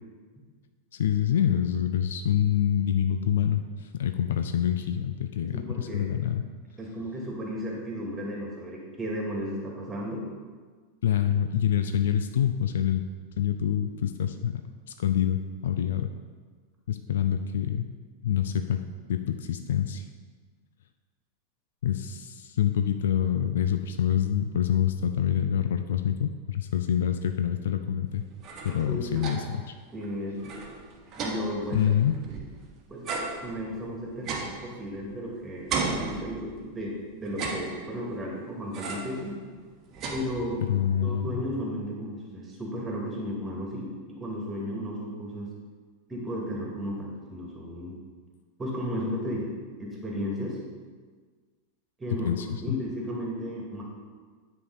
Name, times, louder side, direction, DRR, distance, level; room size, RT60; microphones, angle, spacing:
voice 1, 0.9-6.5 11.0-13.1 13.4-14.6 15.0-16.1 16.9-17.9 18.2-18.8 19.1-20.0 21.8-28.2 28.6-29.6 31.7-32.2 40.7-41.4 52.2-52.8, left 9 dB, 60° left, 8 dB, 0.4 m, -26 dB
voice 2, 5.5-6.1 6.8-10.3 28.9-29.3 29.9-30.5 31.2-31.9 32.3-32.4 32.9-33.1 33.4-36.9 37.2-39.4 40.1-40.6 41.0-45.5 46.1-48.0 48.6-49.5 49.8-50.6 52.0-53.8, equal, 15° right, -2 dB, 2.1 m, -34 dB
sound 1, 28.2-29.7 30.0-30.1 30.4-32.6 33.0-35.3 35.7-36.8 37.3-38.2 38.7-39.2 39.6-40.8, right 4 dB, 35° right, 1.1 m, -35 dB
9.7 x 4.8 x 4.0 m, 1.5 s
figure-of-eight pair, 90°, 0 cm